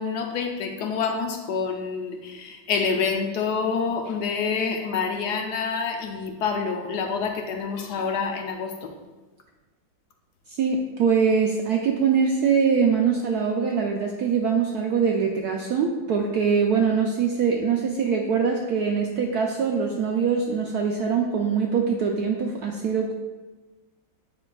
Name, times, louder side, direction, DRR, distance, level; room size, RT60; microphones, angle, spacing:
voice 1, 0.0-8.9, left 5 dB, 70° left, 3 dB, 1.0 m, -27 dB
voice 2, 10.5-23.1, right 6 dB, 75° right, 1 dB, 0.9 m, -23 dB
8.6 x 5.2 x 2.3 m, 1.2 s
omnidirectional pair, 2.1 m